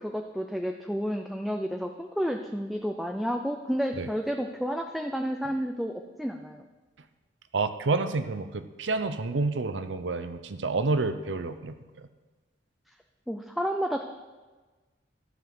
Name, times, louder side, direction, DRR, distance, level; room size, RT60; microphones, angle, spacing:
voice 1, 0.0-6.6 13.3-14.0, equal, ahead, 4 dB, 0.5 m, -31 dB
voice 2, 7.5-11.7, right 3 dB, 90° right, 10 dB, 0.7 m, -29 dB
13.0 x 7.3 x 6.0 m, 1.3 s
head